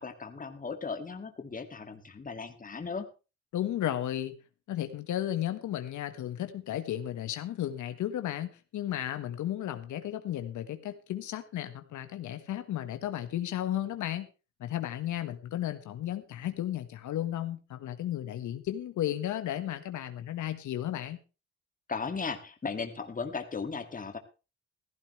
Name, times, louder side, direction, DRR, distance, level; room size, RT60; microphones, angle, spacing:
voice 1, 0.0-3.1 21.9-24.2, left 5 dB, 30° left, 7 dB, 2.3 m, -36 dB
voice 2, 3.5-4.3 4.7-14.3 14.6-21.2, left 12 dB, 85° left, 9 dB, 1.5 m, -34 dB
15.5 x 14.0 x 3.3 m, 0.32 s
cardioid pair, 105°, 29 cm